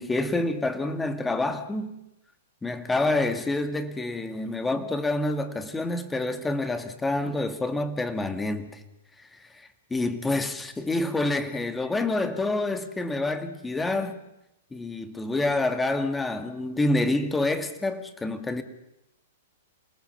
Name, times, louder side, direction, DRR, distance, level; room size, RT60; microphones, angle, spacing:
voice 1, 0.0-2.0 2.6-8.8 9.2-14.2 14.7-18.6, left 2 dB, 10° left, 2.1 m, -27 dB
27.5 x 19.0 x 7.2 m
hypercardioid pair, 130°, 0 cm